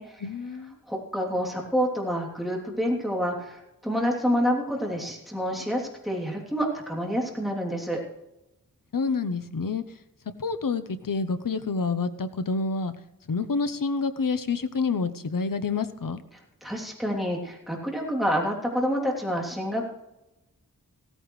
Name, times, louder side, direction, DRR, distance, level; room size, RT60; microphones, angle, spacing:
voice 1, 0.2-0.7 8.9-9.8 10.4-12.9 13.3-16.2, left 4 dB, 70° left, 11 dB, 0.9 m, -28 dB
voice 2, 0.9-8.0 16.6-19.8, equal, ahead, -2 dB, 3.1 m, -28 dB
16.0 x 14.5 x 3.2 m, 0.94 s
wide cardioid pair, 75°, 34 cm